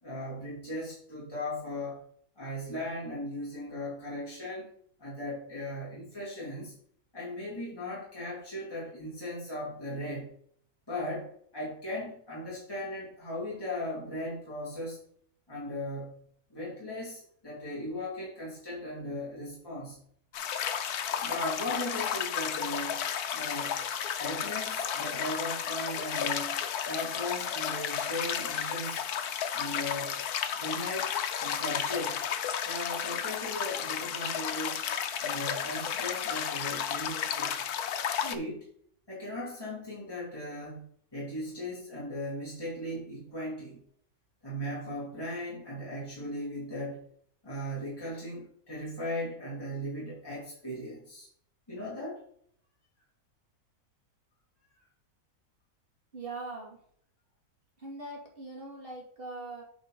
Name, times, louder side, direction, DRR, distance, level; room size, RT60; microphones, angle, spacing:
voice 1, 0.0-2.0 2.4-4.7 5.0-6.7 7.1-10.4 10.9-15.0 15.5-20.0 21.2-23.0 23.3-23.8 24.2-26.6 26.9-29.0 29.5-30.2 30.6-31.1 31.4-32.2 32.6-34.8 35.2-37.6 38.2-38.7 39.1-40.8 41.1-43.8 44.4-47.1 47.4-51.3 51.7-52.2, left 1 dB, 15° left, -7 dB, 3.0 m, -37 dB
sound 1, 20.3-38.3, left 8 dB, 80° left, 1.3 m, -33 dB
voice 2, 56.1-56.8 57.8-59.6, right 2 dB, 35° right, -2 dB, 2.7 m, -41 dB
9.1 x 5.0 x 4.0 m, 0.63 s
omnidirectional pair, 1.6 m